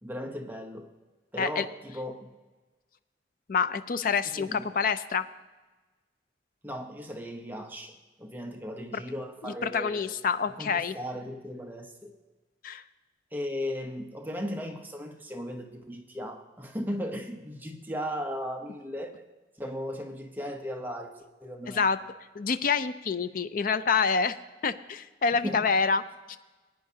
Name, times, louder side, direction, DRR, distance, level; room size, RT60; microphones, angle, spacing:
voice 1, 0.0-0.9 1.3-2.3 4.3-4.7 6.6-10.1 10.6-12.1 13.3-19.2 19.6-21.8 25.4-25.7, equal, 10° right, 2 dB, 0.8 m, -37 dB
voice 2, 3.5-5.3 9.4-10.9 12.6-12.8 21.7-22.0 22.3-24.4 24.6-26.0 26.3-26.4, left 5 dB, 50° left, 12 dB, 0.4 m, -27 dB
19.5 x 9.5 x 2.8 m, 1.2 s
head